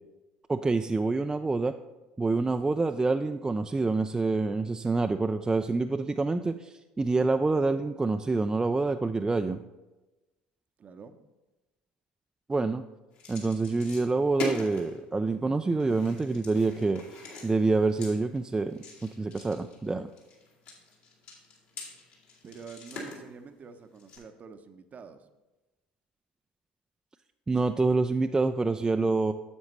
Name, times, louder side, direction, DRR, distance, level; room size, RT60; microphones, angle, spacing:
voice 1, 0.5-1.7 2.2-9.6 12.5-12.8 13.3-17.0 17.4-18.8 19.2-20.1 27.5-29.3, right 3 dB, 15° right, 7 dB, 0.3 m, -27 dB
voice 2, 10.8-11.2 22.4-25.3, right 5 dB, 35° right, 10 dB, 0.7 m, -47 dB
sound 1, 13.1-15.0 15.8-24.2, left 2 dB, 60° left, 2.2 m, -42 dB
9.5 x 7.1 x 3.1 m, 1.1 s
hypercardioid pair, 65°, 4 cm